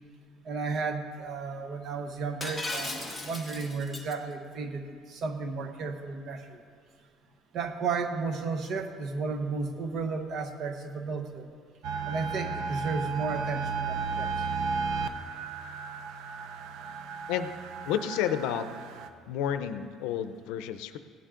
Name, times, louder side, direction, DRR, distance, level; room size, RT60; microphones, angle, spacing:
voice 1, 0.4-6.6 7.5-11.5 12.1-14.3, right 4 dB, 40° right, 7 dB, 0.8 m, -33 dB
Shatter, 2.4-4.1, left 2 dB, ahead, 0.9 m, -36 dB
sound 1, 11.8-19.1, right 5 dB, 65° right, 0.6 m, -34 dB
voice 2, 17.9-18.7 19.3-21.0, left 9 dB, 90° left, 10 dB, 0.5 m, -30 dB
16.5 x 10.0 x 3.8 m, 2.2 s
cardioid pair, 175°, 0 cm